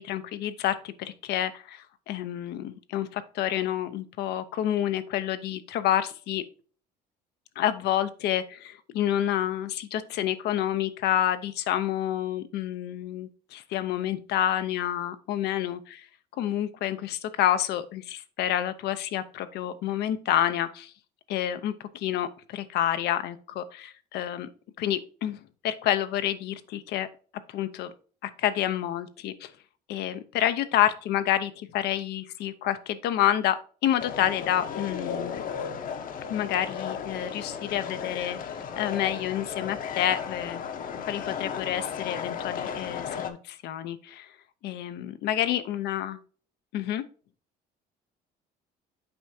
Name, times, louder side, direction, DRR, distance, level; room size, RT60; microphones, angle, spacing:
voice 1, 0.0-6.4 7.6-16.1 16.4-20.9 21.3-24.5 24.8-27.1 27.5-27.9 28.2-29.5 29.9-33.6 33.8-35.4 36.3-38.4 38.8-40.6 41.0-44.3 44.6-46.2 46.7-47.0, left 11 dB, 80° left, 11 dB, 0.7 m, -28 dB
sound 1, 34.0-43.3, left 7 dB, 55° left, 0.9 m, -35 dB
7.9 x 4.7 x 2.7 m, 0.40 s
cardioid pair, 110°, 17 cm